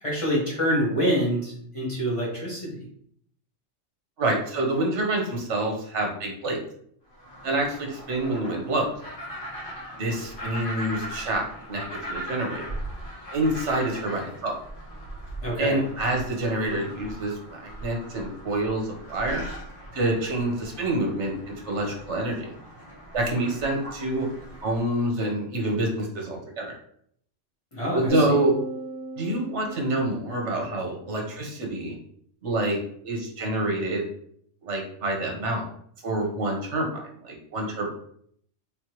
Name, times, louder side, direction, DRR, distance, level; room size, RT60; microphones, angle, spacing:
voice 1, 0.0-2.8 15.4-15.8 27.7-28.4, equal, 25° left, -6 dB, 1.4 m, -26 dB
voice 2, 4.2-6.6 7.4-8.8 10.0-11.8 12.1-12.6 13.3-14.5 15.6-19.4 19.9-22.5 23.1-24.3 24.6-26.7 27.9-28.5 29.2-31.9 32.4-32.8 33.0-34.1 34.6-35.6 36.0-36.9 37.2-37.9, right 1 dB, 65° right, 1 dB, 1.2 m, -27 dB
sound 1, 7.1-24.8, right 1 dB, 45° left, 1.4 m, -40 dB
sound 2, 28.1-30.6, right 2 dB, 5° left, 1.4 m, -35 dB
3.6 x 3.3 x 3.0 m, 0.65 s
omnidirectional pair, 1.3 m